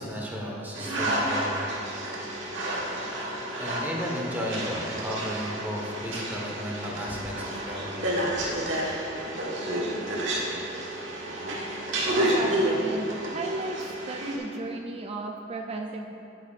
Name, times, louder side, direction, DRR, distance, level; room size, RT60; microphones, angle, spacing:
voice 1, 0.0-1.6 3.6-8.3, equal, 10° right, -3 dB, 1.3 m, -34 dB
sound 1, 0.7-14.4, right 1 dB, 90° right, 1.4 m, -30 dB
voice 2, 12.1-13.8 14.1-16.1, right 2 dB, 35° right, 2 dB, 0.4 m, -35 dB
9.6 x 9.4 x 2.5 m, 2.9 s
head